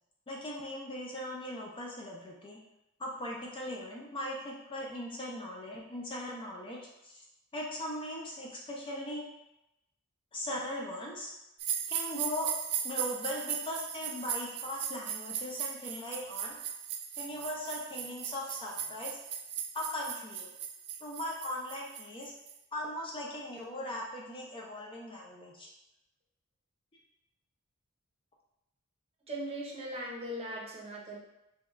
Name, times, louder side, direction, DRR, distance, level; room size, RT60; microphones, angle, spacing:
voice 1, 0.3-2.6 3.0-7.2 7.5-9.3 10.3-11.3 11.9-12.5 12.8-16.6 17.2-19.2 19.7-20.5 21.0-22.3 22.7-25.7, left 1 dB, 25° left, -2 dB, 0.4 m, -39 dB
sound 1, 11.6-22.6, right 9 dB, 70° right, 0.3 m, -38 dB
voice 2, 29.3-31.2, right 1 dB, 25° right, -3 dB, 0.7 m, -39 dB
3.5 x 2.2 x 3.0 m, 0.89 s
head